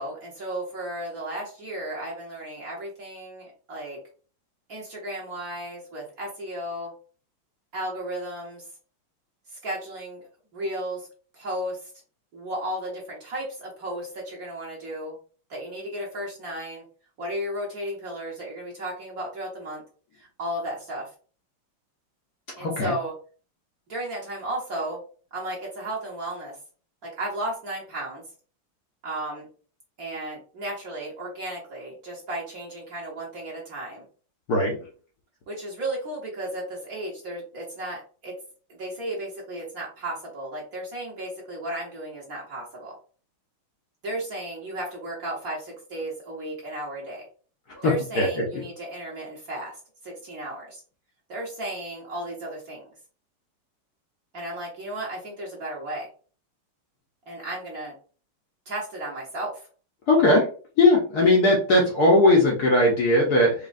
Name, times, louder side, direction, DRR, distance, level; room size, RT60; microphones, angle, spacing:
voice 1, 0.0-4.0 4.7-6.9 7.7-8.7 9.5-10.3 10.5-11.1 11.3-11.9 12.3-15.2 15.5-16.8 17.2-19.8 20.2-21.1 22.6-23.1 23.9-25.0 25.3-26.6 27.0-28.2 29.0-29.5 30.0-34.0 35.5-38.4 38.7-42.9 44.0-47.3 47.8-50.8 51.3-52.9 54.3-56.1 57.3-57.9 58.6-59.6, right 1 dB, 45° right, -4 dB, 1.7 m, -34 dB
voice 2, 22.6-22.9 34.5-34.8 48.2-48.3 60.1-60.5 60.8-63.5, left 2 dB, 55° left, -2 dB, 1.3 m, -18 dB
5.0 x 3.0 x 2.5 m, 0.39 s
omnidirectional pair, 2.4 m